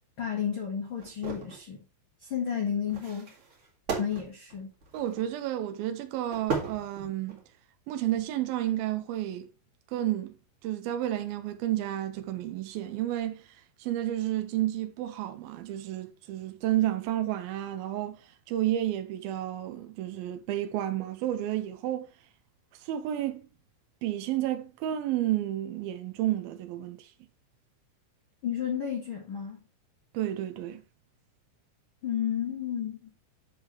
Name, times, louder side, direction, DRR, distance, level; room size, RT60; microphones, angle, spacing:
voice 1, 0.2-1.8 2.2-3.3 4.0-4.7 28.4-29.6 32.0-33.1, left 8 dB, 75° left, 1.1 m, -32 dB
sound 1, 1.0-1.6 2.9-5.4 6.3-7.5 8.0-8.2, right 5 dB, 45° right, 1.8 m, -36 dB
voice 2, 4.9-7.4 7.9-9.5 9.9-10.4 10.6-13.4 13.8-18.2 18.5-22.1 22.8-23.5 24.0-27.1 30.1-30.8, right 13 dB, 90° right, 2.1 m, -31 dB
10.5 x 5.8 x 3.2 m
omnidirectional pair, 5.3 m